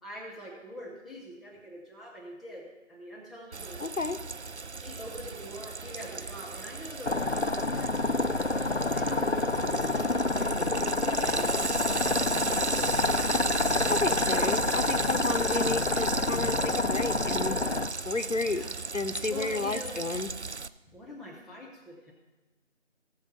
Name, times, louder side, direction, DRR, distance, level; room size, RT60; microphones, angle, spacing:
voice 1, 0.0-3.8 4.8-7.4 7.7-7.9 8.5-10.9 11.2-13.6 18.5-18.7 19.3-20.0 20.9-22.1, equal, ahead, -5 dB, 0.9 m, -44 dB
Frying (food), 3.5-20.7, right 4 dB, 65° right, 0.5 m, -35 dB
voice 2, 3.8-4.2 13.9-17.6 18.0-18.6 18.9-20.3, left 3 dB, 85° left, 9 dB, 0.9 m, -31 dB
sound 1, 7.0-17.9, left 2 dB, 60° left, 0.6 m, -28 dB
18.0 x 6.8 x 4.3 m, 1.2 s
figure-of-eight pair, 180°, 37 cm